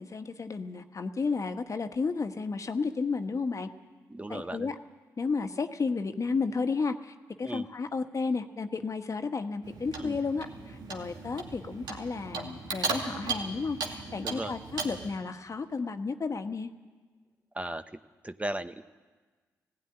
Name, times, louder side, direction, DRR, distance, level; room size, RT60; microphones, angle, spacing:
voice 1, 0.0-3.7 4.3-4.8 5.2-16.7, left 4 dB, 45° left, 7 dB, 1.4 m, -32 dB
voice 2, 4.1-4.7 7.4-7.7 10.0-10.2 14.2-14.5 17.5-17.8 18.2-18.8, right 1 dB, 15° right, 11 dB, 0.9 m, -36 dB
Clock, 9.6-15.1, right 4 dB, 75° right, 2.5 m, -37 dB
16.0 x 16.0 x 9.8 m, 1.4 s
hypercardioid pair, 45°, 8 cm